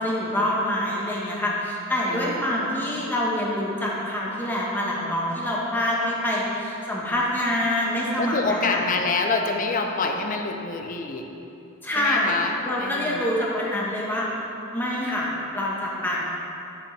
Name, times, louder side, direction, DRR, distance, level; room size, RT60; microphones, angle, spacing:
voice 1, 0.0-8.8 11.8-12.3 12.6-14.3 14.7-16.2, left 1 dB, 10° left, -5 dB, 1.1 m, -26 dB
voice 2, 2.1-2.5 8.2-11.3 12.0-13.3, left 3 dB, 40° left, 3 dB, 0.5 m, -27 dB
8.3 x 6.3 x 3.3 m, 2.9 s
head